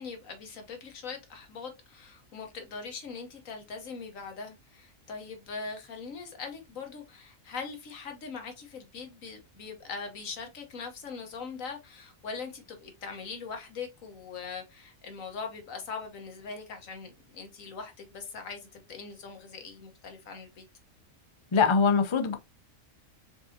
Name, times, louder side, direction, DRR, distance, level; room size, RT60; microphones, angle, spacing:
voice 1, 0.0-20.6, left 5 dB, 75° left, 1.5 m, -41 dB
voice 2, 21.5-22.4, left 5 dB, 40° left, 0.4 m, -23 dB
4.7 x 3.7 x 2.7 m
omnidirectional pair, 1.4 m